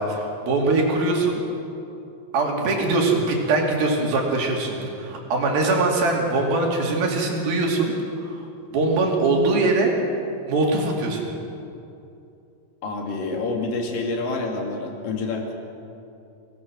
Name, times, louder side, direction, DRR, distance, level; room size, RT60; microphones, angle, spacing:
voice 1, 0.0-1.4 2.3-7.9 8.3-8.4 8.7-9.9 10.5-11.3, right 3 dB, 75° right, 0 dB, 4.5 m, -22 dB
voice 2, 12.8-15.5, left 3 dB, 65° left, 1 dB, 3.9 m, -27 dB
24.5 x 18.5 x 6.3 m, 2.7 s
omnidirectional pair, 4.3 m